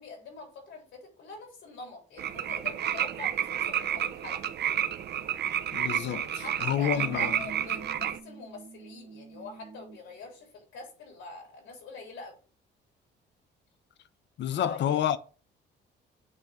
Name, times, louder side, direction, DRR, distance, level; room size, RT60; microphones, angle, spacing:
voice 1, 0.0-4.4 6.3-12.4 14.5-15.0, left 3 dB, 90° left, 3.2 m, -45 dB
sound 1, 2.2-8.2, right 10 dB, 55° right, 0.5 m, -30 dB
voice 2, 5.7-7.3 14.4-15.2, left 10 dB, 65° left, 0.6 m, -29 dB
sound 2, 7.0-10.1, right 4 dB, 35° right, 1.5 m, -46 dB
8.1 x 3.5 x 3.5 m
cardioid pair, 90°, 20 cm